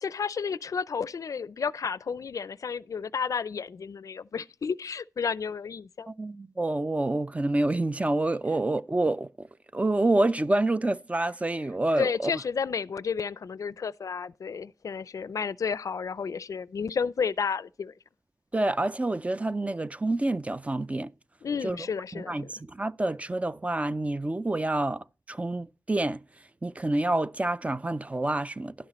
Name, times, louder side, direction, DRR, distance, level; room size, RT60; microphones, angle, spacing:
voice 1, 0.0-6.1 8.5-8.6 12.0-17.9 21.4-22.5, left 6 dB, 65° left, 0.4 m, -32 dB
voice 2, 6.1-9.5 9.7-12.3 18.5-21.1 21.6-21.8 22.2-26.2 26.6-28.7, right 2 dB, 20° right, 0.4 m, -27 dB
11.0 x 9.8 x 3.0 m
cardioid pair, 70°, 6 cm